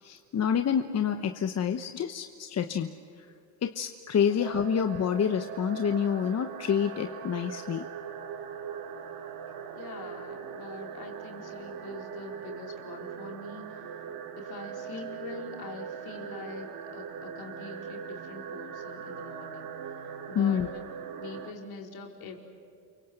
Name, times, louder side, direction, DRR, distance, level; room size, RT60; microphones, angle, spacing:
voice 1, 0.0-2.9 3.2-3.3 3.6-7.9 20.3-20.7, left 8 dB, 40° left, 7 dB, 1.1 m, -28 dB
sound 1, 4.4-21.5, right 7 dB, 60° right, 2.6 m, -41 dB
voice 2, 9.8-20.8 21.2-22.4, left 4 dB, 60° left, 2 dB, 4.8 m, -44 dB
29.5 x 23.5 x 8.0 m, 2.5 s
cardioid pair, 120°, 42 cm